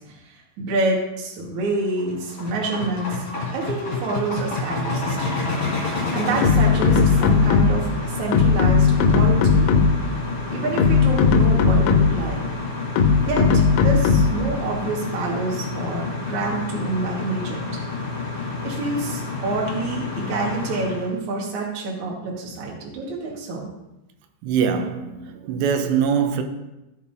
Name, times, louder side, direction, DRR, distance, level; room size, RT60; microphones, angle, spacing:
voice 1, 0.1-3.2 3.5-5.5 6.1-9.7 10.5-12.4 13.2-17.6 18.6-23.7, right 3 dB, 60° right, 2.0 m, -27 dB
sound 1, 1.7-21.1, left 3 dB, 30° left, 2.4 m, -29 dB
sound 2, 6.4-7.9 8.3-10.1 10.6-12.3 13.0-14.5, left 5 dB, 85° left, 3.1 m, -17 dB
voice 2, 24.4-26.4, right 7 dB, 80° right, 2.6 m, -22 dB
15.5 x 7.1 x 2.6 m
omnidirectional pair, 5.5 m